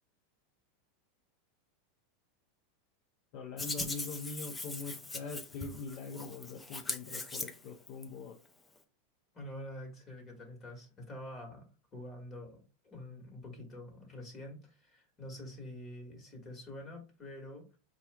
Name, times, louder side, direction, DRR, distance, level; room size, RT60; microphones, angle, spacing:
voice 1, 3.3-8.4, left 4 dB, 55° left, 0.7 m, -43 dB
Hands, 3.6-8.0, left 3 dB, 15° left, 0.5 m, -40 dB
voice 2, 9.3-17.8, left 1 dB, 30° left, 1.5 m, -47 dB
4.3 x 2.4 x 3.3 m
supercardioid pair, 120°, 0 cm